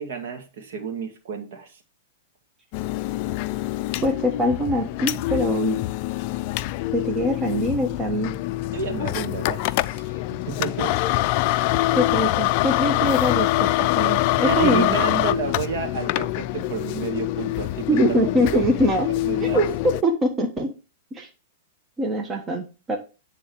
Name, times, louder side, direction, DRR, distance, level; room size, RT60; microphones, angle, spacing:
voice 1, 0.0-1.7 8.7-11.0 14.3-18.2 18.5-18.6 19.2-19.6, right 5 dB, 60° right, 2.0 m, -30 dB
sound 1, 2.7-20.0, left 17 dB, 50° left, 0.3 m, -25 dB
voice 2, 4.0-5.8 6.9-8.3 11.9-14.9 17.9-19.1 19.4-20.7 21.1-21.3 22.0-23.0, equal, 25° right, 1.2 m, -23 dB
9.2 x 3.7 x 4.6 m
hypercardioid pair, 115°, 0 cm